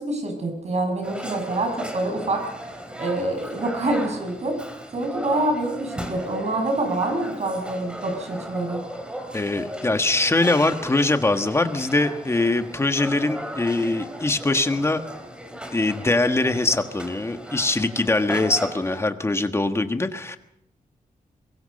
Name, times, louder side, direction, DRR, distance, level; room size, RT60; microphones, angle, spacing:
voice 1, 0.0-2.4 3.0-4.6 4.9-8.8, right 2 dB, 50° right, 4 dB, 6.3 m, -26 dB
sound 1, 1.0-19.0, equal, 5° right, 3.3 m, -36 dB
voice 2, 9.3-15.0 15.7-20.4, left 2 dB, 20° left, 7 dB, 1.5 m, -22 dB
24.0 x 21.5 x 5.3 m, 0.76 s
wide cardioid pair, 160°, 15 cm